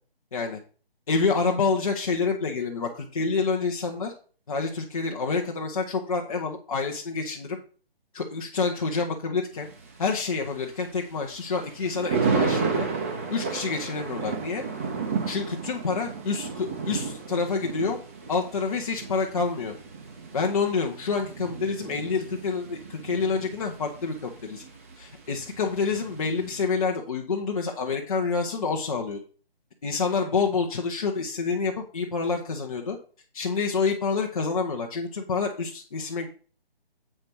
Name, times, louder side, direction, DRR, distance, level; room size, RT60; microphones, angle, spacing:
voice 1, 1.1-4.1 4.5-7.6 8.1-9.7 10.0-12.9 13.3-14.6 15.3-18.0 18.3-19.7 20.3-24.6 25.0-29.2 29.8-33.0 33.3-36.3, left 4 dB, 35° left, 1 dB, 1.0 m, -28 dB
Thunder, 9.5-26.6, right 5 dB, 15° right, 0.7 m, -33 dB
7.6 x 5.1 x 4.7 m, 0.39 s
figure-of-eight pair, 145°, 30 cm